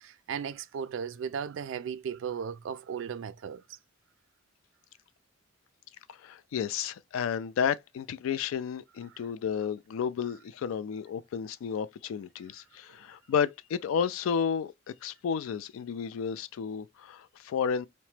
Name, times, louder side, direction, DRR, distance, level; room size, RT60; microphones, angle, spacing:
voice 1, 0.0-3.6, right 7 dB, 65° right, 0.3 m, -36 dB
voice 2, 6.1-17.9, left 7 dB, 85° left, 0.3 m, -32 dB
2.8 x 2.1 x 3.1 m
head